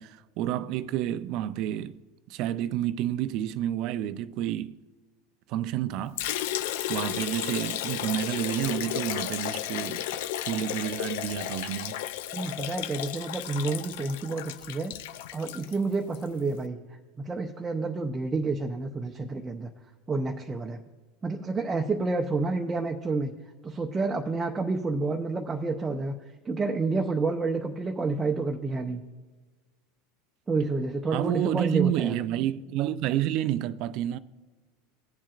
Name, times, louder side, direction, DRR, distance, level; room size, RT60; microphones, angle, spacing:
voice 1, 0.0-2.0 2.3-4.8 5.5-6.3 6.9-10.1 10.4-12.0 31.1-34.2, right 12 dB, 55° right, 0.5 m, -29 dB
Liquid, 6.2-16.3, left 12 dB, 70° left, 0.4 m, -33 dB
voice 2, 12.3-14.9 15.3-16.8 17.2-19.7 20.1-20.8 21.2-23.3 23.6-26.1 26.4-29.0 30.5-32.2, right 3 dB, 20° right, 0.7 m, -29 dB
19.5 x 7.4 x 2.5 m
hypercardioid pair, 100°, 0 cm